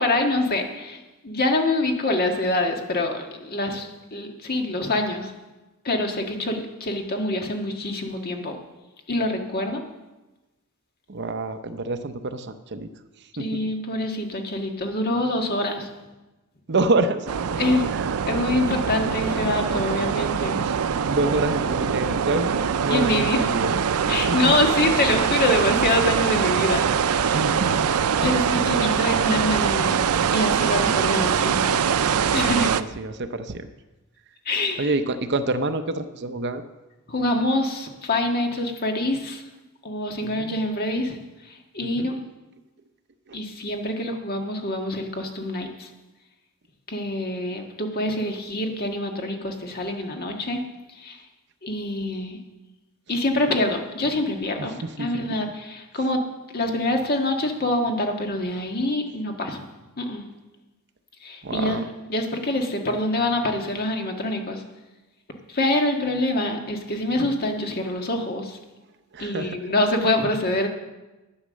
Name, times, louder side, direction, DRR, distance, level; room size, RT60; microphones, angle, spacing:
voice 1, 0.0-5.3 5.8-8.6 9.1-9.8 13.4-15.9 17.6-17.9 18.3-20.6 22.9-23.5 24.1-26.8 27.1-27.4 28.2-30.0 30.3-31.8 32.3-32.7 34.4-34.9 37.1-39.4 39.8-41.2 41.5-42.2 43.3-45.9 46.9-50.6 50.9-51.2 51.6-52.4 53.1-56.2 56.5-59.6 60.0-60.2 61.2-61.8 62.1-64.6 65.5-68.6 69.2-70.7, left 1 dB, 45° left, 3 dB, 1.6 m, -25 dB
voice 2, 11.1-12.9 13.4-13.6 16.7-17.3 17.9-18.2 20.6-23.7 24.3-24.5 27.3-27.9 30.8-31.0 32.6-33.7 34.8-36.6 40.2-40.5 41.8-42.1 43.3-43.4 54.6-55.3 61.4-61.8 69.1-69.6, right 2 dB, 50° right, 9 dB, 0.7 m, -27 dB
sound 1, 17.3-32.8, right 7 dB, 85° right, 0.5 m, -23 dB
11.5 x 8.7 x 6.4 m, 1.1 s
head